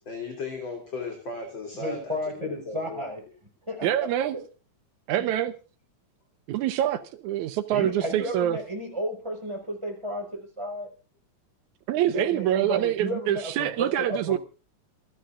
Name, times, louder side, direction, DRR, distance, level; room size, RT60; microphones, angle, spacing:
voice 1, 0.0-2.2 2.7-3.0, left 3 dB, 40° left, 3.8 m, -36 dB
voice 2, 1.8-3.2 3.7-4.1 5.2-5.3 7.7-10.9 12.1-14.4, equal, 10° right, 5.3 m, -33 dB
voice 3, 3.8-4.4 5.1-5.5 6.5-8.6 11.9-14.4, right 12 dB, 80° right, 2.2 m, -25 dB
28.0 x 10.5 x 2.6 m
omnidirectional pair, 3.4 m